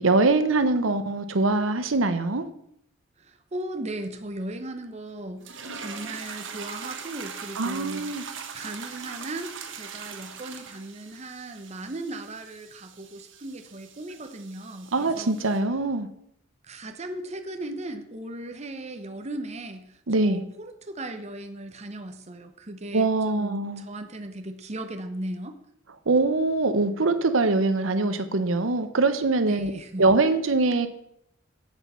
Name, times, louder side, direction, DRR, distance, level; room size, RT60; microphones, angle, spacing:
voice 1, 0.0-2.5 7.6-8.2 14.9-16.1 20.1-20.4 22.9-23.8 26.1-29.7 30.0-30.9, right 3 dB, 85° right, 10 dB, 0.8 m, -23 dB
voice 2, 3.2-5.5 5.7-15.3 16.6-25.6 29.5-30.0, right 1 dB, 35° right, 7 dB, 0.9 m, -37 dB
sound 1, 5.4-15.6, right 6 dB, 70° right, 1.2 m, -41 dB
8.1 x 7.1 x 5.6 m, 0.73 s
head